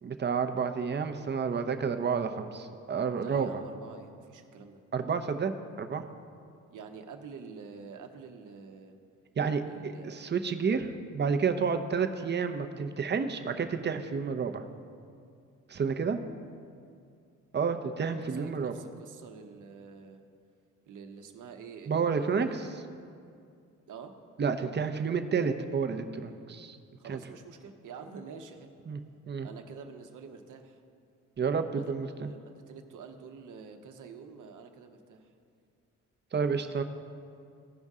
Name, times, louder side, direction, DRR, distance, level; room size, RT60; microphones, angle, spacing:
voice 1, 0.0-3.6 4.9-5.5 5.8-6.0 9.4-14.7 15.7-16.2 17.5-18.7 21.9-22.7 24.4-26.8 27.1-27.2 28.9-29.0 29.3-29.5 31.4-32.3 36.3-36.8, right 5 dB, 35° right, 7 dB, 0.7 m, -30 dB
voice 2, 3.1-4.8 6.7-9.0 9.7-10.3 18.1-20.2 20.9-22.8 23.9-24.1 27.0-28.7 29.4-30.8 31.7-35.3, right 5 dB, 70° right, 5 dB, 0.9 m, -47 dB
15.5 x 5.3 x 3.7 m, 2.3 s
cardioid pair, 70°, 32 cm